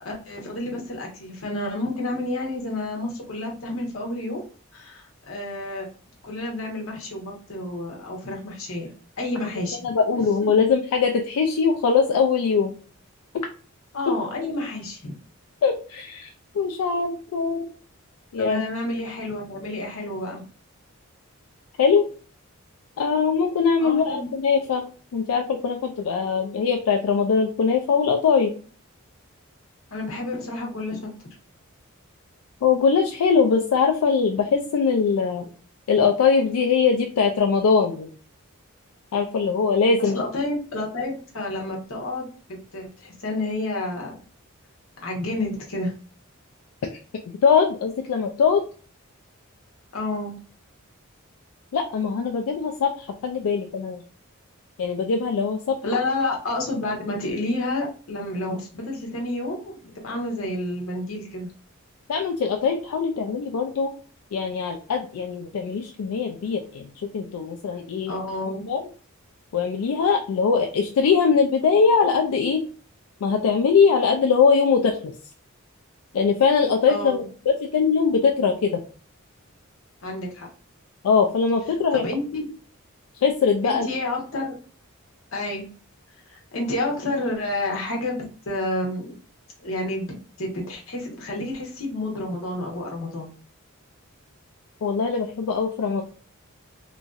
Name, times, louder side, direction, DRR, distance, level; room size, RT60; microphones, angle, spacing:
voice 1, 0.0-4.4 4.7-5.9 6.2-8.9 9.2-9.9 13.9-15.1 18.4-20.4 23.8-24.3 29.9-31.0 40.0-42.3 42.7-44.1 45.0-45.9 49.9-50.4 55.8-61.5 68.1-68.6 76.9-77.2 80.0-80.5 81.9-82.4 83.6-84.5 85.3-85.7 86.3-89.1 89.6-93.3, left 2 dB, 70° left, 0 dB, 0.9 m, -30 dB
voice 2, 9.8-12.7 15.6-16.3 16.5-17.7 18.3-18.6 21.8-22.1 23.0-24.8 25.1-28.5 32.6-35.5 35.9-38.1 39.1-40.2 47.4-48.6 51.7-54.0 54.8-55.7 62.1-63.9 64.3-66.9 67.1-68.1 68.7-68.8 69.5-72.6 73.2-75.1 76.1-78.8 81.0-82.0 83.2-83.9 94.8-96.0, left 5 dB, 90° left, 4 dB, 0.4 m, -21 dB
2.9 x 2.6 x 2.3 m, 0.40 s
head